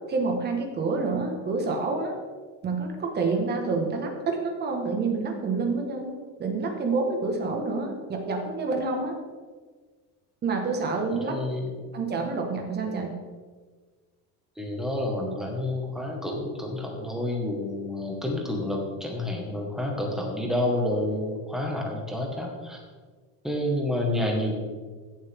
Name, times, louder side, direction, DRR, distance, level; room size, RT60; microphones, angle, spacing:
voice 1, 0.1-2.1 2.6-6.1 6.4-9.2 10.4-11.4 11.9-13.1, right 3 dB, 30° right, 3 dB, 1.7 m, -28 dB
voice 2, 11.1-11.8 14.6-22.8 23.4-24.6, left 1 dB, ahead, 0 dB, 1.7 m, -29 dB
15.5 x 7.3 x 3.7 m, 1.5 s
cardioid pair, 160°, 36 cm